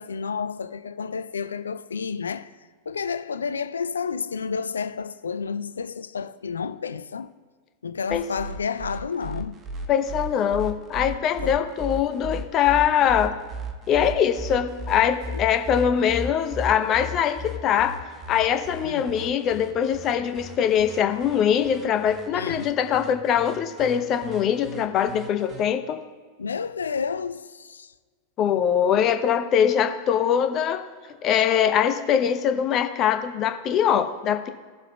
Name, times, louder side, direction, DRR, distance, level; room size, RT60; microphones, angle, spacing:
voice 1, 0.0-2.5 2.9-7.3 7.8-9.6 11.4-11.6 18.8-19.1 22.3-22.7 26.4-27.9, left 5 dB, 70° left, 0.4 m, -30 dB
sound 1, 8.1-25.6, equal, 25° right, 1.0 m, -36 dB
voice 2, 9.9-13.3 13.9-18.0 18.3-26.0 28.4-30.8 31.2-34.5, left 9 dB, 35° left, 0.7 m, -22 dB
17.5 x 7.4 x 2.2 m
figure-of-eight pair, 90°, 0 cm